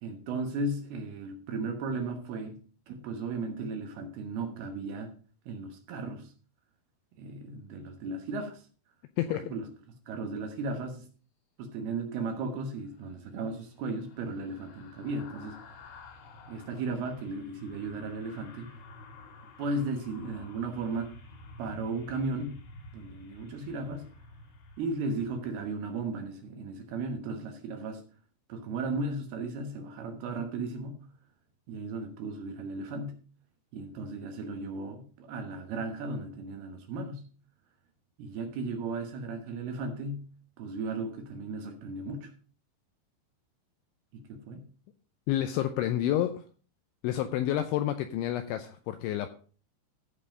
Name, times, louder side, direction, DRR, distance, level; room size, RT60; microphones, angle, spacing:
voice 1, 0.0-2.6 2.9-5.1 5.5-6.3 7.2-8.6 9.3-9.7 10.1-11.1 11.6-15.9 16.5-18.7 19.6-21.1 21.6-22.6 22.9-24.1 24.8-28.0 28.5-31.1 31.7-33.2 33.7-37.2 38.2-40.2 40.6-42.3 44.1-44.6, right 3 dB, 70° right, 2.5 m, -35 dB
sound 1, 12.7-26.1 26.4-26.6, left 2 dB, 65° left, 4.4 m, -51 dB
voice 2, 45.3-46.4 47.0-49.3, left 12 dB, 85° left, 2.7 m, -29 dB
14.5 x 5.6 x 5.0 m
omnidirectional pair, 6.0 m